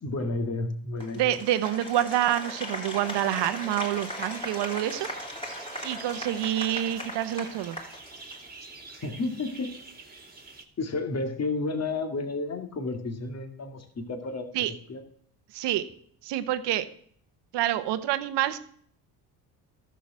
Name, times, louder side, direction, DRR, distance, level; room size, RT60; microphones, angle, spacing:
voice 1, 0.0-1.4 8.9-9.7 10.8-15.0, left 3 dB, 35° left, 5 dB, 2.2 m, -32 dB
Applause, 1.0-8.6, equal, 10° left, 3.6 m, -38 dB
voice 2, 1.1-5.1 5.8-7.8 14.5-14.7 15.5-15.9 16.2-16.9 17.5-18.6, right 12 dB, 65° right, 12 dB, 1.2 m, -27 dB
sound 1, 3.0-10.6, right 3 dB, 20° right, 2.2 m, -48 dB
13.0 x 7.1 x 6.1 m, 0.63 s
supercardioid pair, 75°, 45 cm